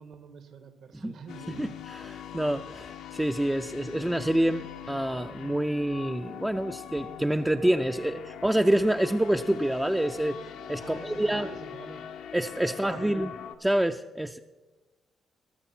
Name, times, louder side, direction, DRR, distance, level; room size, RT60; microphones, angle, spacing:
voice 1, 0.0-1.6 10.8-12.1 12.7-13.3, right 6 dB, 65° right, 9 dB, 1.4 m, -46 dB
sound 1, 1.3-13.6, left 9 dB, 85° left, 1.0 m, -42 dB
voice 2, 1.6-10.4 10.7-11.5 12.3-13.3 13.6-14.4, right 1 dB, 5° right, 6 dB, 0.5 m, -27 dB
19.5 x 7.0 x 5.9 m, 1.2 s
cardioid pair, 90°, 0 cm